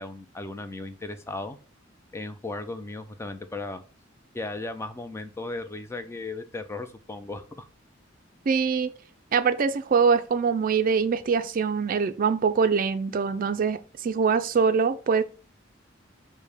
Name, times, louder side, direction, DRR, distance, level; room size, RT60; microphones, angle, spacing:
voice 1, 0.0-1.6 2.1-3.8 4.3-7.7, left 2 dB, 15° left, 0.4 m, -36 dB
voice 2, 8.5-8.9 9.3-15.2, right 5 dB, 45° right, 0.4 m, -23 dB
5.1 x 2.1 x 4.8 m
head